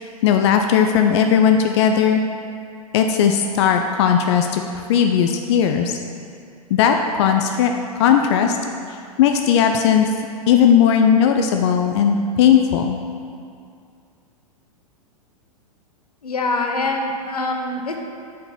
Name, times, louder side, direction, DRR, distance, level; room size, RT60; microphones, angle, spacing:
voice 1, 0.2-2.2 2.9-6.0 6.7-7.7 8.0-8.6 9.2-10.1 10.5-13.0, left 8 dB, 45° left, 5 dB, 0.4 m, -17 dB
voice 2, 16.2-18.0, left 2 dB, 80° left, 2 dB, 0.8 m, -24 dB
4.9 x 4.6 x 5.5 m, 2.3 s
figure-of-eight pair, 100°, 19 cm